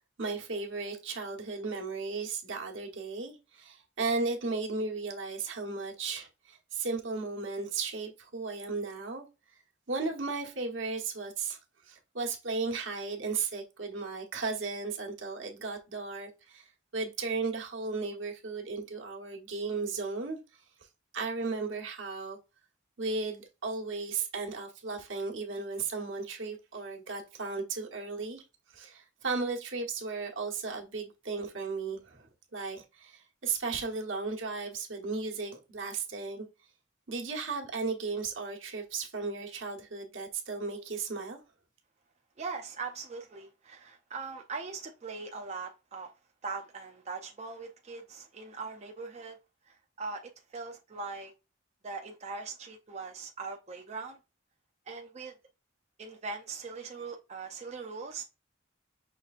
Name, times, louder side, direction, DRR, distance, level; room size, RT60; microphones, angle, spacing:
voice 1, 0.2-9.6 9.9-20.9 21.1-22.4 23.0-28.4 28.7-36.5 37.1-41.4, right 4 dB, 75° right, 1.1 m, -35 dB
voice 2, 42.4-46.1 46.4-49.4 49.7-51.3 51.8-54.2 54.9-55.3 56.0-58.2, right 4 dB, 35° right, 0.5 m, -41 dB
5.8 x 3.3 x 2.4 m
head